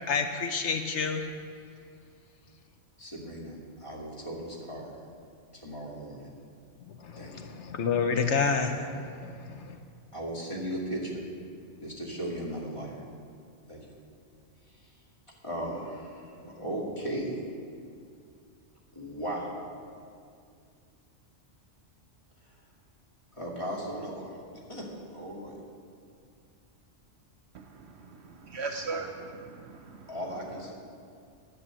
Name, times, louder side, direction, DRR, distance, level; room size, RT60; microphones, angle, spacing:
voice 1, 0.1-1.3 6.8-9.8, left 5 dB, 75° left, 6 dB, 1.1 m, -29 dB
voice 2, 3.0-4.9 5.5-6.3 7.2-7.4 10.1-11.3 11.8-12.9 13.7-13.9 14.7-14.9 15.4-17.4 18.9-19.7 23.3-25.6 30.1-30.7, right 1 dB, 25° left, -3 dB, 2.4 m, -37 dB
voice 3, 27.5-30.1, right 3 dB, 65° right, 4 dB, 1.0 m, -39 dB
11.0 x 9.1 x 7.6 m, 2.3 s
omnidirectional pair, 1.2 m